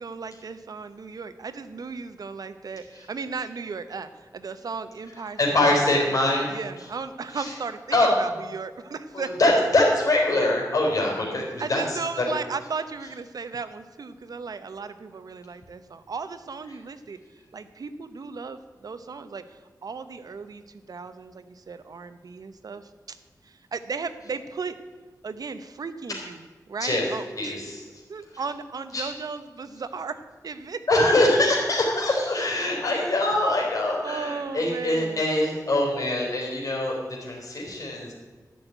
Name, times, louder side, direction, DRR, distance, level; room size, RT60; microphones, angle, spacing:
voice 1, 0.0-6.0 6.5-9.5 11.6-17.2 17.5-23.2 23.4-24.8 25.2-26.4 26.7-27.5 28.1-31.1 34.0-35.2, right 5 dB, 65° right, 11 dB, 0.9 m, -36 dB
voice 2, 5.4-6.5 7.3-7.5 7.9-8.1 9.1-12.2 26.8-28.0 28.9-29.0 30.9-38.1, left 1 dB, 55° left, -2 dB, 4.3 m, -23 dB
13.0 x 6.4 x 9.2 m, 1.4 s
wide cardioid pair, 115°, 7 cm